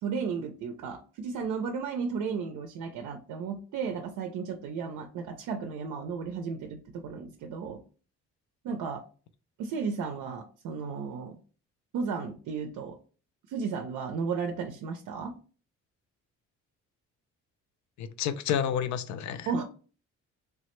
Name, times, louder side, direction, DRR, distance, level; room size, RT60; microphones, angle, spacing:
voice 1, 0.0-7.8 8.6-9.0 9.6-11.4 11.9-13.0 13.5-15.3 19.5-19.6, right 5 dB, 75° right, 0.5 m, -34 dB
voice 2, 18.0-19.5, left 8 dB, 70° left, 0.4 m, -30 dB
3.3 x 2.1 x 2.9 m
cardioid pair, 90°, 30 cm